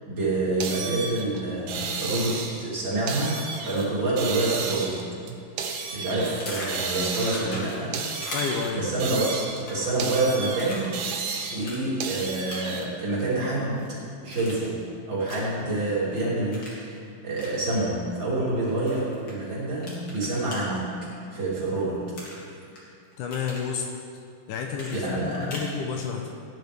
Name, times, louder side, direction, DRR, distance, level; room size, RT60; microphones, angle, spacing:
voice 1, 0.1-5.0 5.9-8.3 8.7-10.9 11.5-14.0 14.2-14.8 15.1-20.9 21.3-22.1 24.9-25.5, right 2 dB, 30° right, -8 dB, 3.7 m, -27 dB
sound 1, 0.6-2.7 3.1-3.9 4.2-6.4 6.7-7.6 7.9-9.7 10.0-12.8, right 5 dB, 65° right, 2.3 m, -32 dB
sound 2, 6.2-7.9 8.2-8.8 9.5-10.0 10.6-11.3 11.6-11.8 12.5-12.9 13.3-13.9 14.3-14.8 15.3-15.6 16.5-16.8 17.3-17.5 18.9-19.3 19.8-20.6 22.1-22.8 23.1-23.7 24.7-25.7, left 1 dB, 35° left, 2.7 m, -38 dB
voice 2, 8.3-8.9 23.2-23.9 24.5-26.3, left 6 dB, 75° left, 2 dB, 2.0 m, -30 dB
17.5 x 10.5 x 3.5 m, 2.4 s
omnidirectional pair, 4.2 m